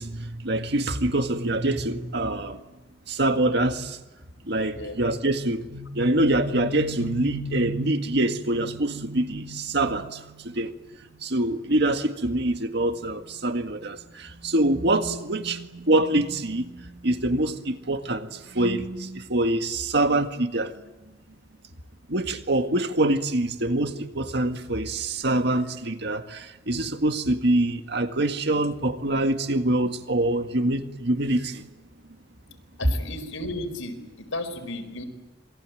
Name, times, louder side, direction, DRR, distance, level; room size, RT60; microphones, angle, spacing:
voice 1, 0.0-2.6 3.1-4.0 4.4-20.7 22.1-31.6, right 1 dB, 55° right, 1.9 m, -25 dB
voice 2, 32.8-35.0, left 2 dB, 90° left, 4.7 m, -34 dB
27.0 x 22.0 x 9.2 m
head